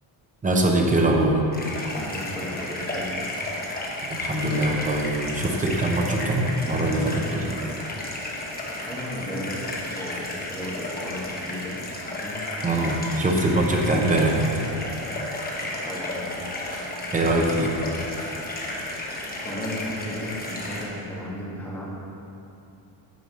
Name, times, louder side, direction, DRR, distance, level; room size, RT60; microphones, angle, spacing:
voice 1, 0.4-1.4 4.1-7.5 12.6-14.5 17.1-17.7, right 1 dB, 15° right, 1 dB, 0.7 m, -23 dB
sound 1, 1.5-20.9, left 1 dB, 20° left, 1.0 m, -33 dB
voice 2, 2.0-3.4 6.6-6.7 8.9-11.8 12.2-12.4 15.8-16.5 19.4-21.9, left 1 dB, 5° left, -6 dB, 1.5 m, -35 dB
9.2 x 4.8 x 6.3 m, 2.8 s
cardioid pair, 175°, 47 cm